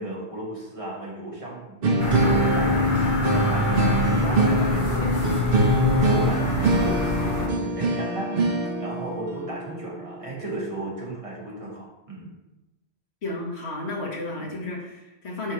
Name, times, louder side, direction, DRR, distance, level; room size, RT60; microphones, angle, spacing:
voice 1, 0.0-8.5 8.8-12.3 14.4-14.6, right 1 dB, 30° right, -4 dB, 1.8 m, -35 dB
sound 1, 1.8-10.8, right 1 dB, 60° right, 1.0 m, -24 dB
sound 2, 2.0-7.5, left 1 dB, 50° left, 1.2 m, -26 dB
voice 2, 13.2-15.5, left 2 dB, 75° left, -1 dB, 1.6 m, -32 dB
8.6 x 4.7 x 3.1 m, 0.98 s
omnidirectional pair, 1.1 m